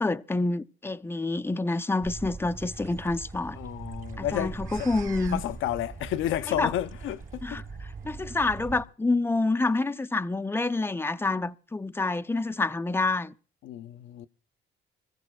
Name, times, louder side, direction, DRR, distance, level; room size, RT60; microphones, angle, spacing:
voice 1, 0.0-3.6 4.2-5.4 6.5-6.7 7.4-13.3, left 3 dB, 10° left, 0.6 m, -28 dB
sound 1, 2.0-8.8, right 4 dB, 40° right, 3.9 m, -40 dB
voice 2, 3.6-4.7 5.3-7.6 13.6-14.3, left 12 dB, 80° left, 0.6 m, -31 dB
25.5 x 15.0 x 2.3 m
cardioid pair, 90°, 20 cm